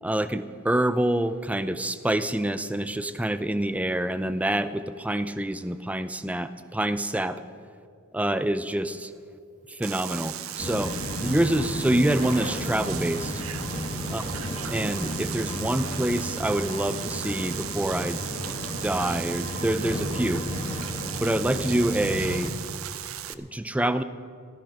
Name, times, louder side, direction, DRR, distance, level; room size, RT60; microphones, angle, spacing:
voice 1, 0.0-7.4 8.1-9.1 9.7-11.0 11.2-13.3 14.1-14.2 14.7-18.2 18.8-20.5 21.2-22.5 23.3-24.0, right 1 dB, 5° right, 12 dB, 0.4 m, -26 dB
Bicycle, 9.6-14.0, right 2 dB, 35° right, 1.7 m, -45 dB
sound 1, 9.8-23.3, right 12 dB, 65° right, 0.6 m, -37 dB
sound 2, 10.6-22.5, equal, 25° left, 1.5 m, -33 dB
14.0 x 13.5 x 5.7 m, 2.3 s
head